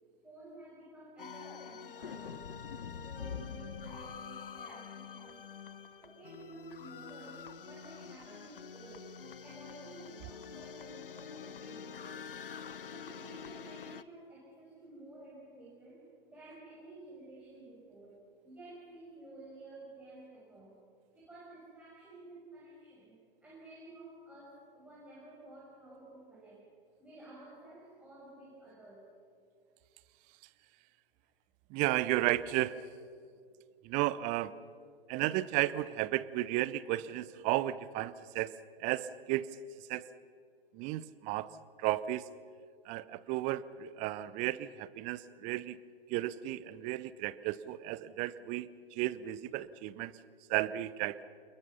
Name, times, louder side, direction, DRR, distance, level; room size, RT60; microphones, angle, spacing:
voice 1, 0.2-2.5 2.8-5.5 6.0-9.2 9.4-12.3 12.9-20.8 21.1-26.6 27.0-29.1, right 2 dB, 5° right, -7 dB, 6.7 m, -52 dB
sound 1, 1.2-14.0, left 7 dB, 70° left, 0.9 m, -46 dB
voice 2, 31.7-32.8 33.8-34.5 35.1-38.5 38.8-39.5 39.9-40.1 40.7-41.5 41.8-42.3 42.9-45.8 46.1-50.1 50.5-51.2, right 15 dB, 25° right, 17 dB, 0.7 m, -33 dB
29.0 x 21.5 x 5.7 m, 2.3 s
figure-of-eight pair, 110°, 29 cm